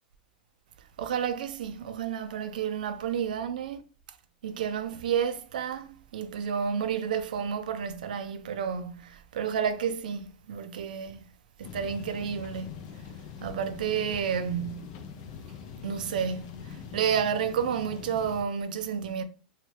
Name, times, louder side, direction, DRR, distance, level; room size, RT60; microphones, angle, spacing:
voice 1, 1.0-3.8 4.4-11.3 11.6-12.8 13.4-15.0 15.8-19.2, right 7 dB, 75° right, 0.4 m, -31 dB
sound 1, 11.6-18.4, left 7 dB, 55° left, 0.5 m, -43 dB
2.8 x 2.3 x 3.1 m
hypercardioid pair, 110°, 5 cm